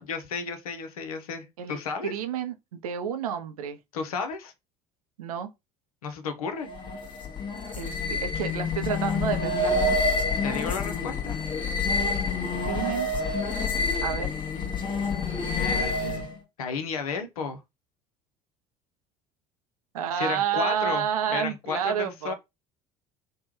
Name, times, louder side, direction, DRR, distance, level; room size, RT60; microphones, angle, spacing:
voice 1, 0.1-2.1 3.9-4.5 6.0-6.7 10.4-11.4 15.5-16.3 16.6-17.6 20.1-22.3, left 5 dB, 75° left, 0.7 m, -33 dB
voice 2, 1.6-3.8 5.2-5.5 7.8-9.7 12.6-13.1 14.0-14.3 19.9-22.3, right 8 dB, 75° right, 0.5 m, -30 dB
sound 1, 6.6-16.4, left 3 dB, 25° left, 1.0 m, -28 dB
3.3 x 2.2 x 3.0 m
figure-of-eight pair, 65°, 19 cm